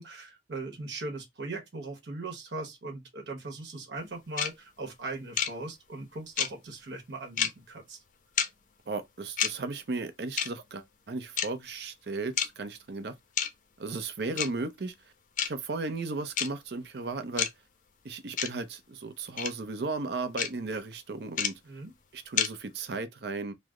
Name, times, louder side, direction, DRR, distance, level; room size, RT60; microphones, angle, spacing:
voice 1, 0.0-8.0 21.6-21.9, right 2 dB, 90° right, 1.0 m, -39 dB
sound 1, 4.4-4.5 5.4-5.5 6.4-6.5 7.4-7.5 8.4-8.5 9.4-9.5 10.4-10.5 11.4-11.5 12.4-12.5 13.4-13.5 14.4-14.5 15.4-15.5 16.4-16.5 17.4-17.5 18.4-18.5 19.4-19.5 20.4-20.5 21.4-21.5 22.4-22.5, left 8 dB, 45° left, 0.4 m, -27 dB
voice 2, 8.9-13.1 13.8-14.9 15.4-17.5 18.0-21.6 22.1-23.5, right 3 dB, 70° right, 0.6 m, -35 dB
3.2 x 2.0 x 3.5 m
head